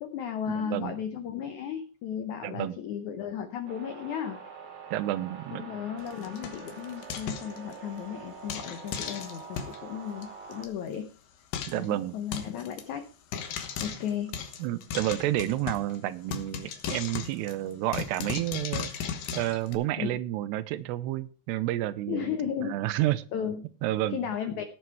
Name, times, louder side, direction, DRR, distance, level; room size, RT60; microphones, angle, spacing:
voice 1, 0.0-4.4 5.5-11.1 11.7-13.1 13.8-14.4 20.0-20.2 22.1-23.1 23.3-24.6, left 8 dB, 80° left, 8 dB, 1.7 m, -35 dB
voice 2, 0.5-1.0 2.4-2.8 4.9-5.7 11.7-12.2 14.6-22.3 22.6-23.2 23.8-24.2, right 14 dB, 90° right, 13 dB, 2.9 m, -30 dB
sound 1, 3.7-10.7, right 5 dB, 40° right, 1.7 m, -45 dB
Frying (food), 6.0-8.0 8.5-9.8 10.2-10.3 10.5-10.7 10.9-11.0 11.5-11.9 12.3-12.8 13.3-16.0 16.3-19.7, left 7 dB, 65° left, 2.7 m, -36 dB
17.0 x 7.1 x 4.7 m, 0.38 s
omnidirectional pair, 4.7 m